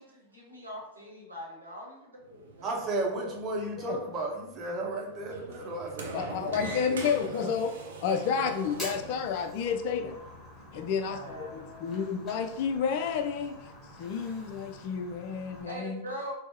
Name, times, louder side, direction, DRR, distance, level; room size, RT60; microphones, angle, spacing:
voice 1, 0.0-2.7 10.7-12.1 15.7-16.3, equal, 85° right, -3 dB, 1.0 m, -43 dB
Sliding door, 2.2-9.3, right 3 dB, 65° right, 0.6 m, -44 dB
voice 2, 2.6-7.5, right 2 dB, 30° right, -1 dB, 0.8 m, -34 dB
voice 3, 6.1-7.7 8.0-10.2 10.7-13.6 14.0-16.0, left 6 dB, 50° left, 8 dB, 0.3 m, -30 dB
Fire, 8.6-15.6, left 1 dB, 20° left, 1.2 m, -47 dB
4.0 x 2.0 x 3.5 m, 0.85 s
figure-of-eight pair, 90°, 0 cm